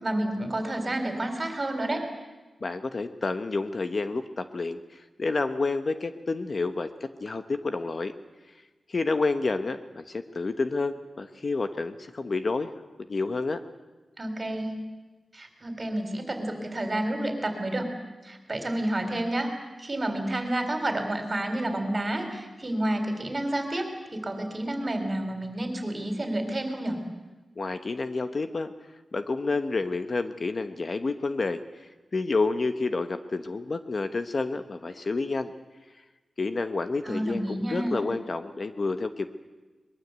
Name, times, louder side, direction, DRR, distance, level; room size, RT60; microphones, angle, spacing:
voice 1, 0.0-2.1 14.2-14.8 15.3-17.9 18.2-19.5 19.8-27.0 37.0-38.0, right 1 dB, 30° right, 6 dB, 3.9 m, -30 dB
voice 2, 2.6-8.1 8.9-12.7 13.1-13.6 27.6-28.7 29.1-31.6 32.1-35.5 36.4-39.3, left 3 dB, 40° left, 9 dB, 1.0 m, -29 dB
23.0 x 21.5 x 8.1 m, 1.2 s
wide cardioid pair, 145°, 0 cm